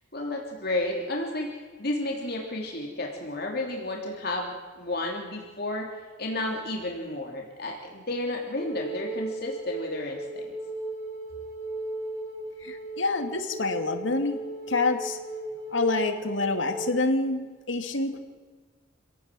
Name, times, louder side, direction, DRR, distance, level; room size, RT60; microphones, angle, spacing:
voice 1, 0.1-5.9 6.2-10.5, left 1 dB, 50° left, 0 dB, 3.2 m, -32 dB
Wind instrument woodwind instrument, 8.5-17.0, right 2 dB, 20° right, 6.5 m, -36 dB
voice 2, 12.6-14.4 14.7-15.2 15.7-18.2, left 3 dB, 75° left, 6 dB, 2.4 m, -27 dB
27.5 x 17.0 x 7.7 m, 1.5 s
head